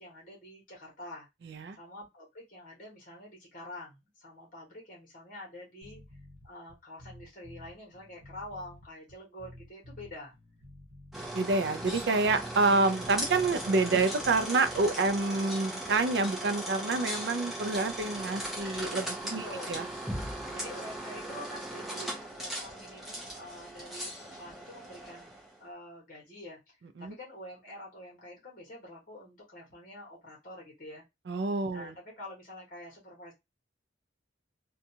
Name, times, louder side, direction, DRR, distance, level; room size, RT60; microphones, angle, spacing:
voice 1, 0.0-1.3 1.7-6.0 6.4-10.3 19.4-19.8 20.5-31.0 31.7-33.3, left 1 dB, 45° left, 1.2 m, -47 dB
voice 2, 1.4-1.8 11.3-19.8 27.0-27.1 31.3-31.9, right 3 dB, 60° right, 0.4 m, -28 dB
sound 1, 5.8-15.4, left 1 dB, 75° right, 0.9 m, -52 dB
sound 2, 11.1-25.5, right 1 dB, ahead, 0.7 m, -38 dB
2.7 x 2.3 x 2.7 m
head